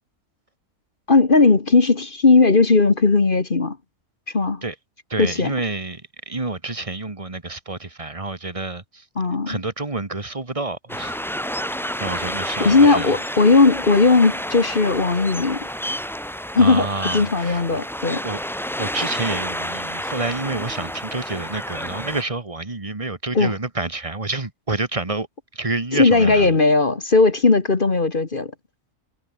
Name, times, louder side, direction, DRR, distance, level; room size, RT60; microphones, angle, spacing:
voice 1, 1.1-3.8 4.3-4.6 5.2-5.5 9.2-9.6 12.6-15.7 16.5-16.9 17.1-18.2 23.3-23.5 25.9-28.5, left 3 dB, 35° left, 1.6 m, -17 dB
voice 2, 5.1-9.0 9.5-11.2 12.0-13.1 16.6-17.8 18.2-18.4 18.8-25.3 25.5-26.5, right 3 dB, 20° right, 1.9 m, -28 dB
sound 1, 10.9-22.2, equal, ahead, 1.0 m, -30 dB
omnidirectional pair, 1.6 m